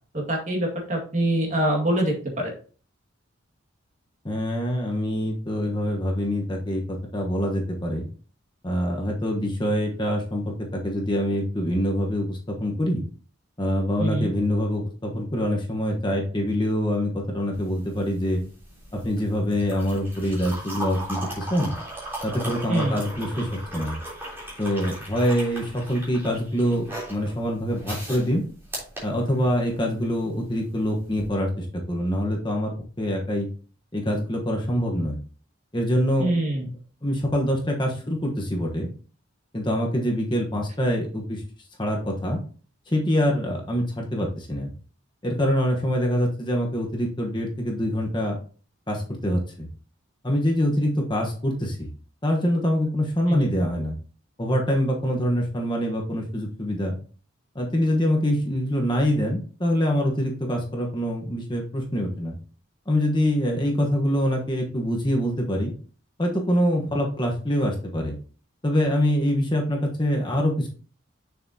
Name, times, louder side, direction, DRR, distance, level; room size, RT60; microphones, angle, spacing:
voice 1, 0.1-2.5 14.0-14.3 22.7-23.0 36.2-36.7 53.3-53.5, right 1 dB, 35° right, 0 dB, 2.0 m, -24 dB
voice 2, 4.2-8.1 8.6-13.0 13.6-18.4 18.9-21.7 22.2-24.0 24.6-28.4 29.0-33.5 33.9-35.2 35.7-36.3 37.0-38.9 39.5-41.4 41.8-42.4 42.9-44.7 45.2-48.4 48.9-49.7 50.2-51.9 52.2-53.9 54.4-57.0 57.5-62.4 62.9-65.7 66.2-68.2 68.6-70.7, equal, 25° left, 0 dB, 1.1 m, -25 dB
sound 1, 17.5-29.8 31.1-31.3, right 1 dB, 10° right, 3.5 m, -37 dB
6.8 x 6.6 x 2.8 m, 0.40 s
head